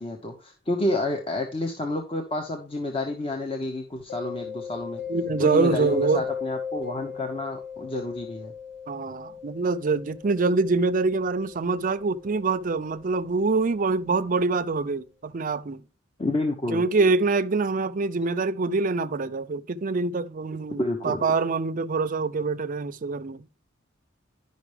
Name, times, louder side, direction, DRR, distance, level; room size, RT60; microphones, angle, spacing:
voice 1, 0.0-5.0 5.4-8.5 16.2-16.8 20.8-21.2, left 2 dB, 30° left, 0.9 m, -29 dB
Mallet percussion, 4.1-13.7, left 7 dB, 65° left, 2.7 m, -37 dB
voice 2, 5.1-6.3 8.9-15.8 16.7-23.5, right 3 dB, 40° right, 0.5 m, -25 dB
11.0 x 5.4 x 3.3 m
head